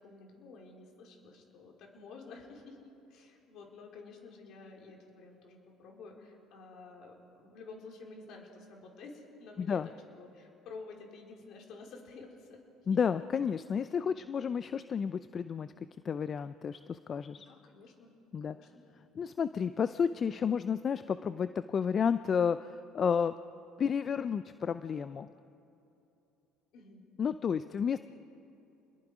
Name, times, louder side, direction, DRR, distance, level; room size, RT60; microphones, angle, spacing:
voice 1, 0.0-9.8 10.2-12.6 12.9-13.0 17.3-18.1 18.4-18.8 26.7-27.0, left 3 dB, 65° left, 0 dB, 4.4 m, -51 dB
voice 2, 12.9-15.7 16.0-17.5 18.3-18.6 19.2-23.3 23.8-25.3 27.2-28.0, left 7 dB, 40° left, 12 dB, 0.6 m, -31 dB
28.5 x 21.5 x 5.0 m, 2.9 s
supercardioid pair, 85°, 0 cm